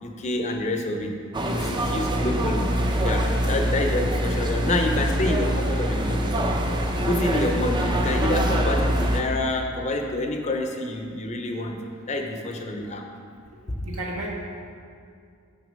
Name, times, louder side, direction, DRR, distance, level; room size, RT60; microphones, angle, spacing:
voice 1, 0.0-1.1 1.4-2.6 3.0-6.2 7.1-11.8 12.1-13.0 13.7-13.8, left 1 dB, 30° left, 4 dB, 0.6 m, -27 dB
sound 1, 1.3-9.2, equal, 20° right, 0.5 m, -24 dB
voice 2, 2.1-2.4 13.8-14.3, right 1 dB, 75° right, -2 dB, 1.4 m, -33 dB
6.7 x 6.1 x 5.3 m, 2.3 s
head